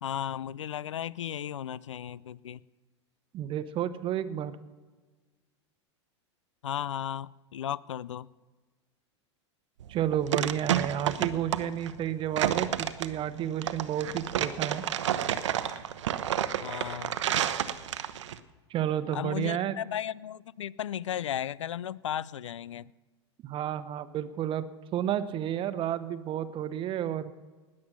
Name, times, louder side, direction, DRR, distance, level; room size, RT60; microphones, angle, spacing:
voice 1, 0.0-2.6 6.6-8.3 16.6-17.2 19.1-22.9, left 10 dB, 85° left, 22 dB, 0.4 m, -35 dB
voice 2, 3.3-4.6 9.9-14.8 18.7-19.7 23.4-24.7 24.9-27.3, right 10 dB, 35° right, 13 dB, 1.0 m, -31 dB
sound 1, 9.8-18.4, right 10 dB, 75° right, 0.8 m, -30 dB
19.5 x 7.6 x 6.0 m, 1.3 s
hypercardioid pair, 100°, 15 cm